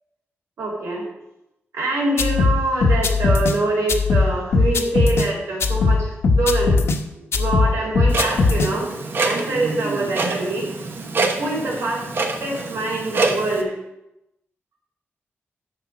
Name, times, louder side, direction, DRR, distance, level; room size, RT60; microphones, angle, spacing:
voice 1, 0.6-1.0 1.7-6.8 7.1-8.9 9.2-10.7 11.4-12.0 12.4-13.7, right 2 dB, 85° right, -3 dB, 4.3 m, -24 dB
sound 1, 2.2-3.6 3.9-5.3 5.6-7.0 7.3-8.7, left 4 dB, 65° left, 1.0 m, -18 dB
Clock, 8.1-13.6, right 3 dB, 50° right, 1.2 m, -26 dB
11.0 x 6.9 x 5.1 m, 0.90 s
wide cardioid pair, 160°, 5 cm